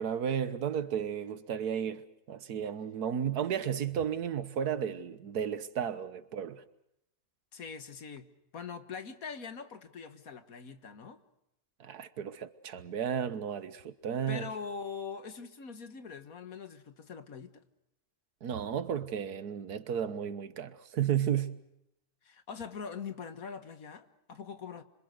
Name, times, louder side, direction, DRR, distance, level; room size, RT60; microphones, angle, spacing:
voice 1, 0.0-2.0 2.3-6.6 11.8-14.5 18.4-21.6, right 8 dB, 85° right, 1.7 m, -33 dB
voice 2, 7.5-11.2 14.3-17.5 22.2-24.8, left 6 dB, 65° left, 1.9 m, -43 dB
27.0 x 25.0 x 6.6 m
omnidirectional pair, 1.6 m